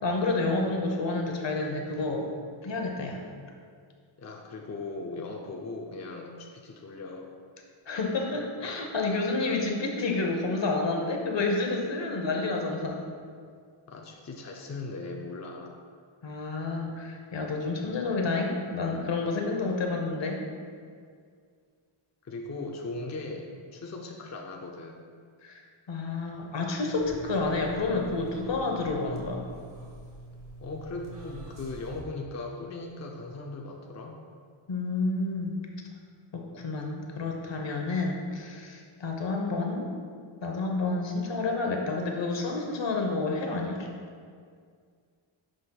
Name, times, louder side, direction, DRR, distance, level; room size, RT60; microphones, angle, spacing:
voice 1, 0.0-2.3 2.6-3.2 7.9-13.0 16.2-20.4 25.4-25.6 25.9-29.4 34.7-35.6 36.3-39.9 40.4-43.9, left 3 dB, 60° left, 1 dB, 1.0 m, -29 dB
voice 2, 4.2-7.3 13.9-15.8 22.2-25.0 30.6-34.2, left 3 dB, 35° left, 0 dB, 0.5 m, -38 dB
sound 1, 27.0-32.0, right 1 dB, 40° right, 1.2 m, -45 dB
9.8 x 5.0 x 2.3 m, 2.1 s
wide cardioid pair, 115°, 49 cm